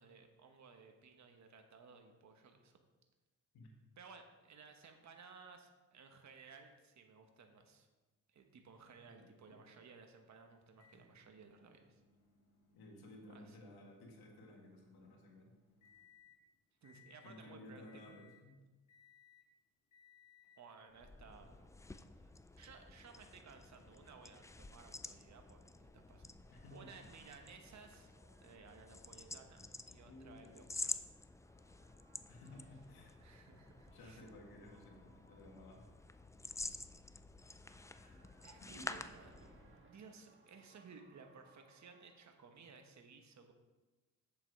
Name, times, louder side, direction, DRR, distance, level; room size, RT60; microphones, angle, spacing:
voice 1, 0.0-2.8 4.0-7.9 8.3-12.0 13.3-13.6 16.8-18.2 20.6-21.7 22.2-22.3 22.6-28.1 28.4-29.6 29.8-30.9 33.2-34.2 38.0-39.5 39.9-43.5, right 5 dB, 50° right, 4 dB, 1.1 m, -58 dB
voice 2, 9.2-9.6 12.7-15.5 17.2-18.6 26.6-26.9 30.1-30.7 32.3-33.1 33.9-35.9 37.9-38.3 38.6-38.9, left 1 dB, 85° left, -1 dB, 1.9 m, -56 dB
Microwave oven, 10.8-16.4 16.8-17.5 17.9-18.5 18.9-19.5 19.9-20.7 21.7-21.8 23.8-23.9, left 6 dB, 55° left, 3.3 m, -67 dB
sound 1, 20.9-39.8, left 2 dB, 10° left, 0.3 m, -50 dB
sound 2, 26.4-42.9, right 3 dB, 35° right, 1.5 m, -69 dB
7.6 x 7.1 x 4.7 m, 1.2 s
cardioid pair, 95°, 36 cm